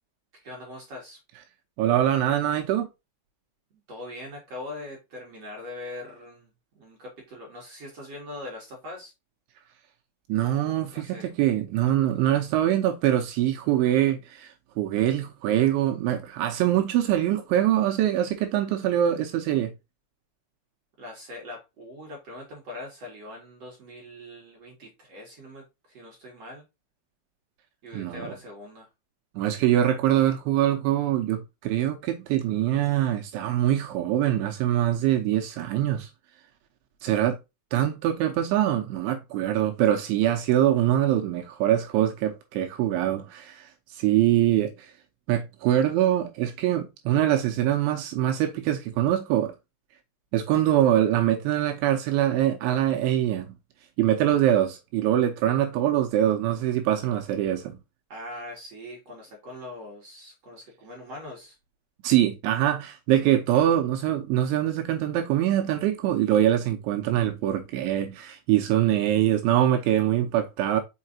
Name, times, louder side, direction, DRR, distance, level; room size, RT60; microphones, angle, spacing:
voice 1, 0.4-1.2 3.9-6.5 6.7-9.1 10.9-11.3 21.0-25.6 25.9-26.6 27.8-28.9 58.1-61.6 63.2-63.4, left 1 dB, 50° right, 2.1 m, -41 dB
voice 2, 1.8-2.9 10.3-19.7 27.9-28.3 29.4-36.1 37.0-37.4 37.7-44.9 45.3-49.5 50.3-53.5 54.0-57.8 62.0-70.8, right 12 dB, 80° right, 2.9 m, -24 dB
6.5 x 5.8 x 2.7 m
omnidirectional pair, 6.0 m